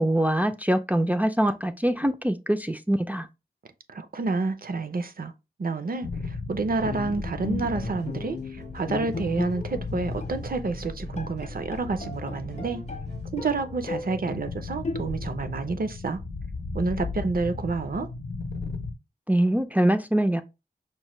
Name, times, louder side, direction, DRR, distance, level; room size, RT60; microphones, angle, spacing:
voice 1, 0.0-3.3 19.3-20.4, right 1 dB, 10° right, 0.3 m, -23 dB
voice 2, 3.9-5.3 5.6-12.8 13.3-16.2 16.7-18.1, right 3 dB, 60° right, 0.5 m, -29 dB
sound 1, 6.0-18.9, left 3 dB, 80° left, 0.6 m, -36 dB
Bowed string instrument, 6.8-9.9 10.2-10.4 10.8-10.9 11.2-13.1 13.4-14.2 14.8-15.4, left 3 dB, 45° left, 0.6 m, -35 dB
sound 2, 7.9-13.3, right 3 dB, 80° right, 1.0 m, -50 dB
5.3 x 2.1 x 3.0 m
wide cardioid pair, 70°, 17 cm